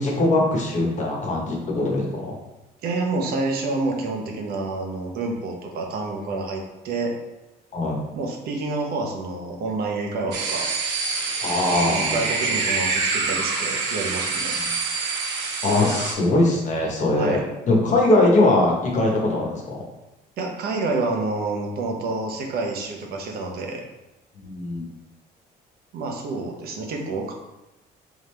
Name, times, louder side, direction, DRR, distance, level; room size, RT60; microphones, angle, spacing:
voice 1, 0.0-2.3 7.7-8.0 11.4-12.2 15.6-19.8 24.4-24.9, left 2 dB, 45° left, 0 dB, 1.1 m, -21 dB
voice 2, 2.8-7.1 8.1-10.7 11.6-14.5 17.2-17.4 20.4-23.8 25.9-27.3, right 3 dB, 65° right, 1 dB, 0.9 m, -28 dB
sound 1, 10.3-16.1, right 4 dB, 90° right, 0.8 m, -26 dB
3.6 x 3.6 x 3.3 m, 1.0 s
cardioid pair, 110°, 17 cm